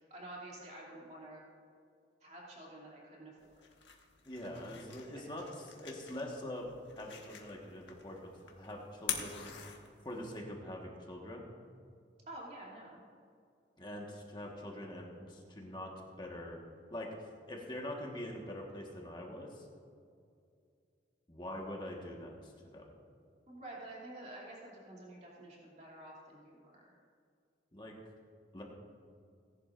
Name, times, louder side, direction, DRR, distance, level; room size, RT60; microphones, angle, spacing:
voice 1, 0.1-1.4 2.2-3.5 12.3-13.0 23.5-26.9, right 1 dB, 40° right, -5 dB, 2.8 m, -49 dB
sound 1, 3.4-10.4, left 8 dB, 85° left, 1.4 m, -46 dB
voice 2, 4.2-8.2 8.4-9.5 10.0-11.5 13.8-16.6 16.9-19.7 21.3-22.9 27.7-27.9 28.5-28.6, left 1 dB, 25° left, -1 dB, 1.4 m, -44 dB
18.0 x 11.0 x 2.6 m, 2.3 s
head